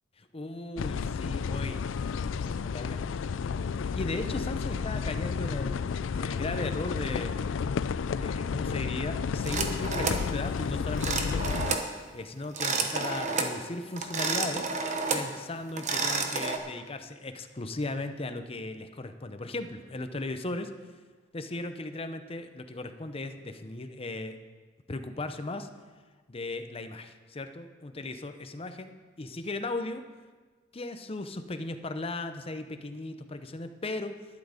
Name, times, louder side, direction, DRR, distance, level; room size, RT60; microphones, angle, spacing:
voice 1, 0.2-1.9 2.4-3.2 3.9-5.8 6.1-7.4 8.1-11.7 12.1-14.7 15.1-20.7 21.3-24.4 24.9-25.7 26.3-28.9 29.2-30.0 30.7-34.2, left 2 dB, 30° left, 8 dB, 0.7 m, -37 dB
sound 1, 0.8-11.8, left 6 dB, 85° left, 0.4 m, -31 dB
sound 2, 9.5-10.3 11.0-11.9 12.4-13.6 14.0-15.3 15.7-16.6, right 4 dB, 40° right, 1.0 m, -30 dB
11.5 x 10.5 x 5.1 m, 1.4 s
head